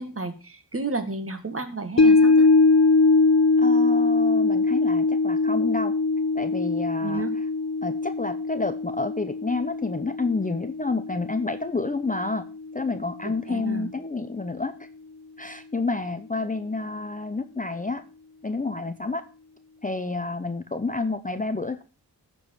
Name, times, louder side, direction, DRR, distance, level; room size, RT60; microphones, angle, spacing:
voice 1, 0.0-2.5 7.0-7.3 13.2-13.9, right 3 dB, 35° right, 8 dB, 1.6 m, -32 dB
sound 1, 2.0-12.4 12.7-12.8, left 3 dB, 40° left, 1.1 m, -22 dB
voice 2, 3.6-5.9 6.3-7.2 7.8-12.4 12.7-14.7 15.4-18.0 18.4-19.2 19.8-21.8, left 3 dB, 20° left, 10 dB, 0.6 m, -29 dB
11.5 x 4.6 x 7.2 m, 0.35 s
wide cardioid pair, 70°, 41 cm